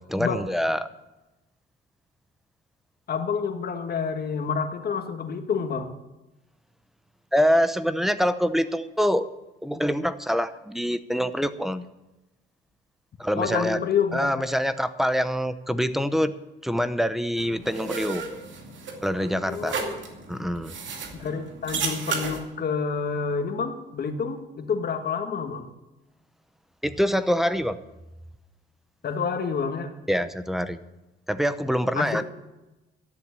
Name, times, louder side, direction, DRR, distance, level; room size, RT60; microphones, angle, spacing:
voice 1, 0.1-0.8 7.3-9.3 9.6-11.9 13.2-13.8 14.1-16.3 16.6-18.2 19.0-19.7 20.3-20.8 26.8-27.8 30.1-30.8 31.3-32.2, equal, ahead, 13 dB, 0.8 m, -25 dB
voice 2, 3.1-5.9 13.4-14.5 19.4-19.9 21.1-25.7 29.0-29.9 32.0-32.2, left 6 dB, 50° left, 6 dB, 1.7 m, -28 dB
sound 1, 17.4-22.4, right 5 dB, 70° right, 2.4 m, -34 dB
13.0 x 7.5 x 9.8 m, 1.0 s
cardioid pair, 90°, 20 cm